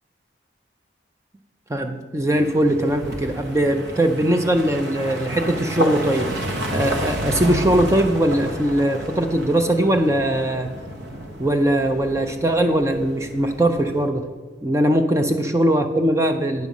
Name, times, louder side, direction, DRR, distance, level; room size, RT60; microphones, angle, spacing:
voice 1, 1.7-6.3 6.7-10.7 11.4-14.2 14.6-16.7, right 1 dB, 15° right, 5 dB, 0.4 m, -20 dB
sound 1, 2.3-14.1, equal, 65° right, 1.1 m, -31 dB
9.3 x 6.2 x 5.3 m, 1.3 s
head